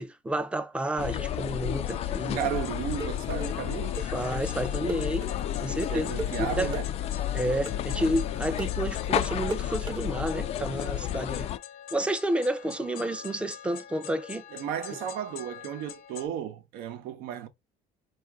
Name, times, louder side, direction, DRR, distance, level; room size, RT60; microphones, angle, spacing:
voice 1, 0.0-2.4 4.0-5.3 5.6-6.8 7.3-11.5 11.9-14.4, right 1 dB, 5° right, 0.5 m, -30 dB
sound 1, 1.0-11.6, left 11 dB, 45° left, 0.4 m, -31 dB
sound 2, 1.9-16.3, left 10 dB, 70° left, 0.8 m, -44 dB
voice 2, 2.3-4.0 5.9-6.9 14.5-17.5, right 9 dB, 75° right, 0.9 m, -34 dB
sound 3, 2.5-10.0, right 3 dB, 30° right, 0.9 m, -38 dB
4.9 x 2.5 x 3.6 m
cardioid pair, 125°, 15 cm